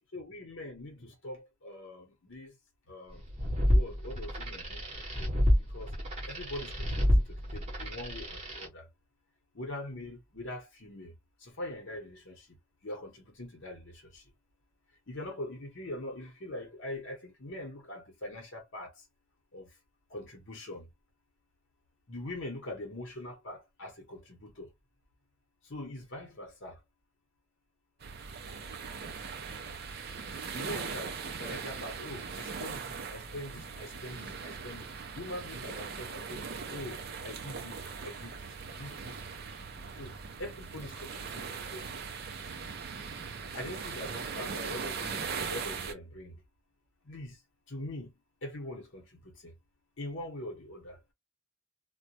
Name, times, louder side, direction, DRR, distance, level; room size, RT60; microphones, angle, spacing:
voice 1, 0.0-2.5 2.9-3.2 3.7-4.8 5.2-5.3 5.7-5.9 6.3-7.0 7.3-8.8 9.6-11.1 11.4-12.4 12.8-13.9 15.1-18.9 19.5-19.7 20.1-20.8 22.1-24.7 25.7-26.7 30.5-34.8 35.2-36.4 36.7-39.7 40.0-40.1 40.4-41.8 43.5-46.4 47.1-47.3 47.7-48.1 48.4-49.5 50.0-51.0, left 1 dB, 60° left, 0.9 m, -43 dB
sound 1, 3.2-8.7, equal, 30° right, 1.0 m, -29 dB
sound 2, 28.0-45.9, right 5 dB, 45° right, 0.5 m, -40 dB
2.2 x 2.1 x 2.7 m
head